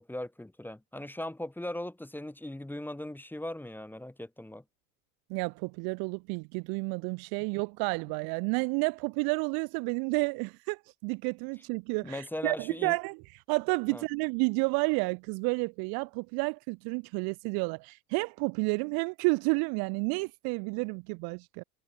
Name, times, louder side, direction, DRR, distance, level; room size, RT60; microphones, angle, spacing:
voice 1, 0.0-4.6 12.0-13.0 13.9-14.0, left 1 dB, 5° left, 1.4 m, -39 dB
voice 2, 5.3-13.2 13.5-21.6, right 33 dB, 50° right, 0.6 m, -31 dB
hypercardioid pair, 80°, 47 cm